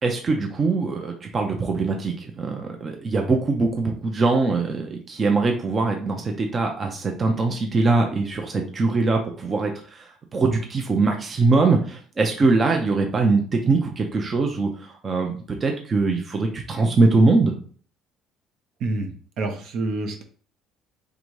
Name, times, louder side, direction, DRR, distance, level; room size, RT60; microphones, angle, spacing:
voice 1, 0.0-17.6, right 3 dB, 30° right, 3 dB, 0.6 m, -22 dB
voice 2, 18.8-20.2, right 2 dB, 60° right, 4 dB, 0.9 m, -28 dB
3.8 x 3.5 x 3.2 m, 0.44 s
cardioid pair, 120°, 0 cm